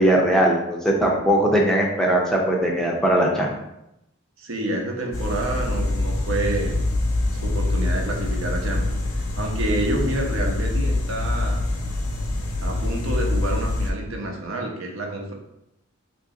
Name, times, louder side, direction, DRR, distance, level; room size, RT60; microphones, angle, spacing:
voice 1, 0.0-3.5, right 1 dB, 5° left, -2 dB, 0.4 m, -20 dB
voice 2, 4.4-6.8 7.3-8.8 9.1-11.6 12.6-15.3, right 1 dB, 70° right, 0 dB, 0.6 m, -28 dB
sound 1, 5.1-13.9, left 2 dB, 90° left, 0.7 m, -25 dB
2.9 x 2.6 x 3.6 m, 0.85 s
head